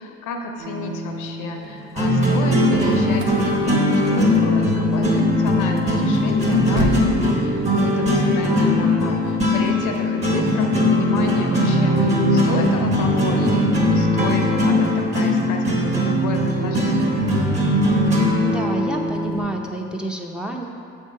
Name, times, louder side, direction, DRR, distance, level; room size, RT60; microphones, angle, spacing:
voice 1, 0.0-17.2, left 3 dB, 85° left, 4 dB, 0.7 m, -31 dB
sound 1, 0.6-19.4, left 1 dB, 20° right, 1.4 m, -20 dB
sound 2, 2.5-7.2, right 1 dB, 85° right, 0.7 m, -32 dB
voice 2, 18.4-20.7, right 2 dB, 5° right, 0 dB, 0.6 m, -28 dB
7.1 x 3.6 x 5.4 m, 2.5 s
cardioid pair, 90°, 30 cm